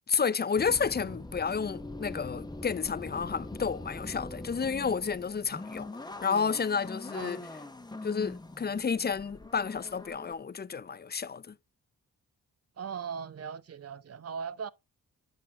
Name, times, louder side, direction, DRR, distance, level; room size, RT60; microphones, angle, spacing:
voice 1, 0.1-5.9 6.2-7.4 8.0-11.5, left 6 dB, 30° left, 0.5 m, -31 dB
sound 1, 0.6-10.3, left 2 dB, 10° left, 1.1 m, -42 dB
voice 2, 7.1-7.5 12.8-14.7, right 6 dB, 45° right, 0.7 m, -39 dB
8.4 x 6.5 x 2.5 m
supercardioid pair, 45°, 36 cm